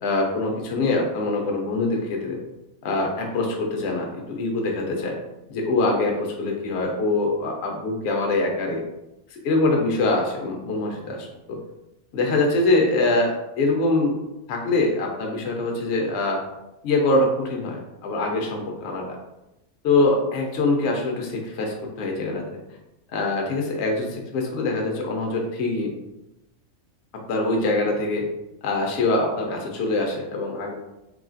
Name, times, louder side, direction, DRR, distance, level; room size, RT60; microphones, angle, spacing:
voice 1, 0.0-2.4 2.8-5.1 5.5-8.8 9.3-11.6 12.1-14.2 14.5-16.4 16.8-19.2 19.8-22.4 23.1-25.9 27.3-28.3 28.6-30.7, left 2 dB, 65° left, 1 dB, 0.7 m, -24 dB
3.0 x 2.3 x 2.5 m, 0.93 s
omnidirectional pair, 1.5 m